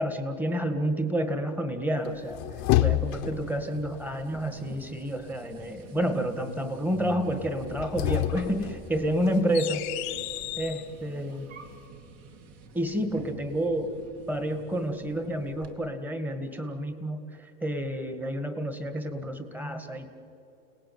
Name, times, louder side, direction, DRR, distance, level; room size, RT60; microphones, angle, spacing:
voice 1, 0.0-2.4 2.8-9.8 10.6-11.5 12.7-13.9 14.3-20.1, equal, 5° right, 8 dB, 1.9 m, -29 dB
sound 1, 2.1-3.6 7.6-10.9, left 15 dB, 45° left, 1.1 m, -29 dB
sound 2, 2.1-15.7, right 3 dB, 40° right, 2.7 m, -47 dB
29.5 x 18.5 x 9.5 m, 2.9 s
supercardioid pair, 145°, 38 cm